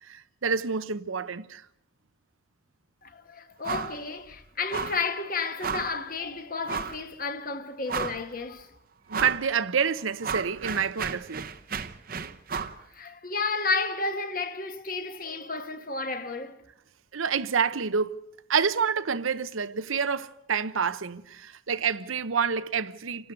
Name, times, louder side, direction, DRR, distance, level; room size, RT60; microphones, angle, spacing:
voice 1, 0.0-1.6 9.1-11.5 17.1-18.2 18.5-23.3, right 6 dB, 85° right, 0.8 m, -28 dB
voice 2, 3.0-8.7 12.9-16.6, left 4 dB, 45° left, 1.4 m, -32 dB
sound 1, 3.6-4.0 4.3-4.4 4.7-5.1 5.6-6.0 6.7-7.0 7.5-7.6 7.9-8.4 9.1-9.5 9.8-12.8, right 5 dB, 45° right, 0.8 m, -33 dB
28.5 x 12.0 x 8.1 m
head